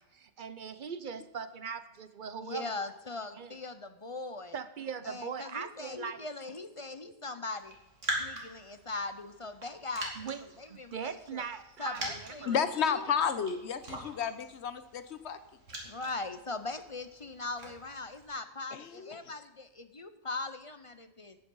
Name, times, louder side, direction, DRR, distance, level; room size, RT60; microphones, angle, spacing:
voice 1, 0.0-2.7 3.4-3.6 4.5-6.3 10.2-12.6, right 6 dB, 45° right, 13 dB, 0.7 m, -40 dB
voice 2, 2.4-4.6 5.0-7.8 8.2-11.4 11.8-12.5 12.8-13.0 15.8-21.4, left 3 dB, 35° left, 10 dB, 0.6 m, -40 dB
Raindrop, 7.6-18.3, right 2 dB, 60° right, 2.9 m, -43 dB
voice 3, 12.5-15.4 18.7-19.3, left 7 dB, 55° left, 12 dB, 1.1 m, -32 dB
13.5 x 9.0 x 5.5 m, 1.0 s
omnidirectional pair, 1.4 m